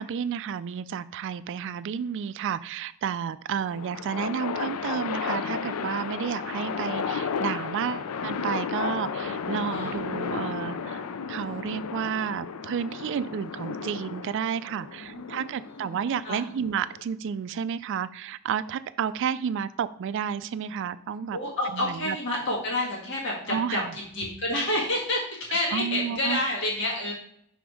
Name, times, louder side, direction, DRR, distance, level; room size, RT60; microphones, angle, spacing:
voice 1, 0.0-11.0 11.3-21.4 21.7-22.2 23.5-23.9 25.7-26.4, right 7 dB, 55° right, 14 dB, 0.3 m, -31 dB
sound 1, 3.6-17.0, left 6 dB, 75° left, 0.4 m, -33 dB
voice 2, 15.0-16.0 16.2-16.4 21.3-27.1, left 1 dB, 55° left, -3 dB, 1.7 m, -29 dB
6.1 x 3.6 x 4.7 m, 0.67 s
head